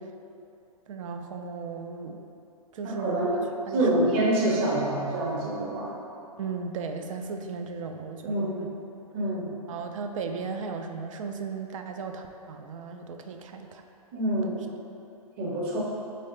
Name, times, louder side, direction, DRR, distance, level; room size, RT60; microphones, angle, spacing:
voice 1, 0.9-2.2 2.7-5.0 6.4-8.7 9.7-13.8 14.4-14.7, right 5 dB, 55° right, 5 dB, 0.4 m, -36 dB
voice 2, 2.8-3.3 3.7-5.9 8.2-8.6 9.1-9.5 14.1-14.6 15.4-15.8, right 1 dB, 40° right, -4 dB, 0.8 m, -26 dB
4.7 x 2.8 x 3.1 m, 2.7 s
figure-of-eight pair, 120°, 20 cm